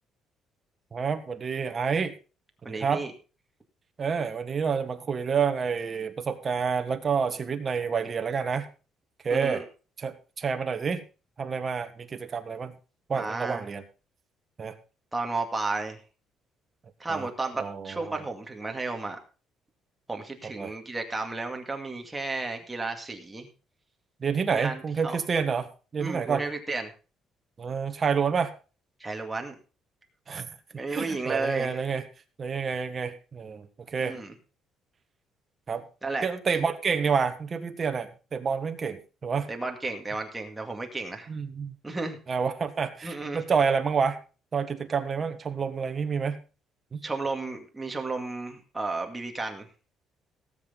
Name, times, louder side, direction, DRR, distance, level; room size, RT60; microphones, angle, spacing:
voice 1, 0.9-2.1 2.7-3.0 4.0-8.7 9.2-9.6 10.0-11.0 11.4-12.7 13.1-13.8 14.6-14.7 17.1-17.3 17.6-18.2 20.6-20.7 24.2-26.4 27.6-28.5 30.3-30.5 30.9-32.0 32.4-34.2 35.7-35.8 36.2-39.5 41.3-41.7 42.3-44.2 44.5-46.4 46.9-47.0, right 6 dB, 30° right, 7 dB, 1.5 m, -28 dB
voice 2, 2.6-3.1 9.3-9.6 13.1-13.6 15.1-16.0 17.0-19.2 20.1-23.5 24.5-25.2 26.0-26.9 29.0-29.5 30.8-31.8 34.0-34.3 36.0-36.3 39.5-41.3 41.8-42.2 43.0-43.4 47.0-49.7, right 3 dB, 10° right, 3 dB, 2.1 m, -33 dB
17.5 x 8.1 x 3.9 m, 0.34 s
cardioid pair, 160°, 0 cm